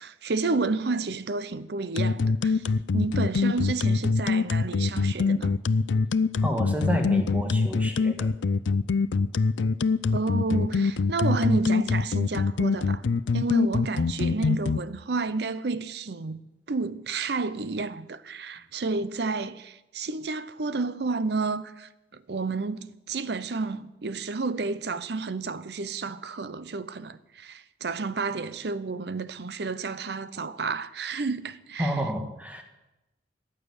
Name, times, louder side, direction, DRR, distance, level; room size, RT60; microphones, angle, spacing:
voice 1, 0.0-2.6 2.9-5.6 10.1-13.0 13.3-16.4 16.7-31.9, right 3 dB, 65° right, 0.7 m, -31 dB
sound 1, 2.0-14.8, left 4 dB, 90° left, 0.5 m, -24 dB
voice 2, 6.4-8.3 31.8-32.6, equal, 10° right, 1.6 m, -29 dB
14.5 x 6.7 x 9.7 m
head